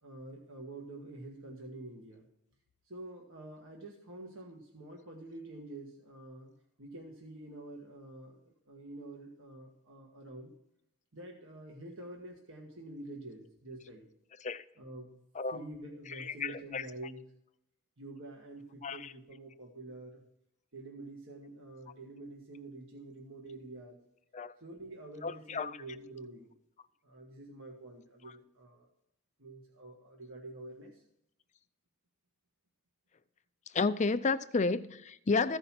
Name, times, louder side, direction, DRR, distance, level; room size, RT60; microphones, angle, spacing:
voice 1, 0.0-2.3 2.9-6.5 6.8-10.5 11.1-14.0 14.8-15.2 15.5-17.3 18.0-20.2 20.7-24.0 24.6-26.5 27.0-28.9 29.4-31.0, right 2 dB, 60° right, 1.5 m, -47 dB
voice 2, 16.2-16.9 18.8-19.1 24.3-24.5 25.2-25.8 33.7-35.6, left 4 dB, 30° left, 0.5 m, -31 dB
14.5 x 5.4 x 5.8 m
head